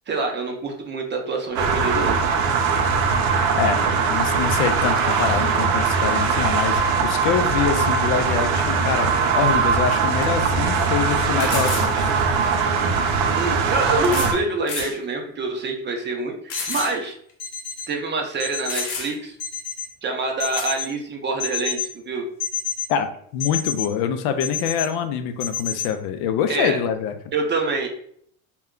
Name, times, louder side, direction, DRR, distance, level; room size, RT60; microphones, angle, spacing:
voice 1, 0.1-2.2 13.3-17.1 17.9-19.4 20.0-22.3 26.5-26.8 27.3-27.9, right 3 dB, 25° right, 3 dB, 0.5 m, -26 dB
sound 1, 1.5-14.3, right 5 dB, 85° right, 0.6 m, -21 dB
voice 2, 3.5-12.1 22.9-27.1, left 8 dB, 65° left, 8 dB, 0.5 m, -25 dB
sound 2, 10.2-10.3 11.4-11.9 13.1-13.2 14.0-14.4 14.7-15.0 15.5-15.6 16.5-16.9 17.3-17.4 18.3-18.4 18.7-19.3 20.6-20.7, left 4 dB, 90° left, 0.9 m, -30 dB
sound 3, 16.5-16.8 17.4-17.8 18.4-18.8 19.4-19.8 20.4-20.8 21.4-21.8 22.4-22.8 23.4-23.8 24.4-24.8 25.4-25.8, left 8 dB, 25° left, 1.1 m, -28 dB
2.3 x 2.2 x 3.6 m, 0.65 s
supercardioid pair, 100°, 41 cm